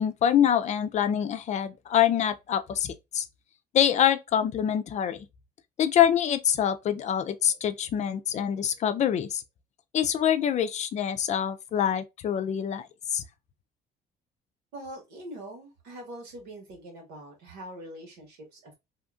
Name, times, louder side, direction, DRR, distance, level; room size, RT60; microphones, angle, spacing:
voice 1, 0.0-3.3 3.7-5.3 5.8-9.4 9.9-12.9 13.1-13.2, left 9 dB, 45° left, 0.4 m, -25 dB
voice 2, 14.7-18.7, right 1 dB, 90° right, 1.5 m, -43 dB
2.8 x 2.5 x 2.3 m
cardioid pair, 110°, 17 cm